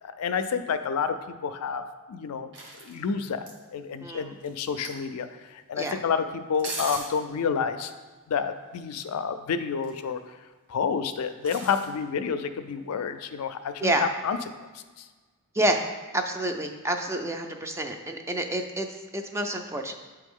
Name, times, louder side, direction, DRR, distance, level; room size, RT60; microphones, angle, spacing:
voice 1, 0.0-1.8 2.1-2.5 2.8-3.4 3.7-7.9 8.3-10.2 10.7-14.4 14.7-15.0, left 6 dB, 80° left, 9 dB, 0.4 m, -29 dB
sound 1, 2.5-3.6 4.4-5.1 6.5-7.2 9.6-10.2 11.4-11.9 13.5-13.6, right 2 dB, 55° right, 1.1 m, -39 dB
voice 2, 4.0-4.3 5.8-6.0 13.8-14.1 15.5-15.8 16.1-19.9, right 1 dB, 10° right, 4 dB, 0.4 m, -28 dB
8.2 x 3.4 x 3.6 m, 1.3 s
head